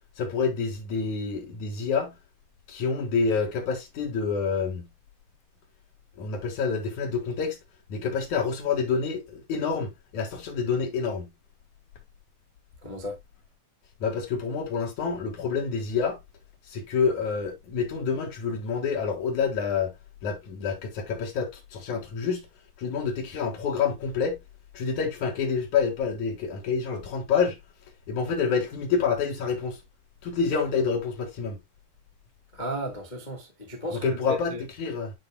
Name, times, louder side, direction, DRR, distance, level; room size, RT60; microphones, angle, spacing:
voice 1, 0.2-2.1 2.7-4.9 6.2-7.6 7.9-11.3 14.0-16.2 16.7-19.9 20.2-22.5 22.8-24.4 24.7-27.6 28.1-29.8 30.2-31.6 33.9-35.1, left 5 dB, 65° left, 2.9 m, -28 dB
voice 2, 12.8-13.2 32.5-34.6, equal, 35° left, 0.7 m, -34 dB
10.0 x 5.3 x 2.2 m
omnidirectional pair, 3.9 m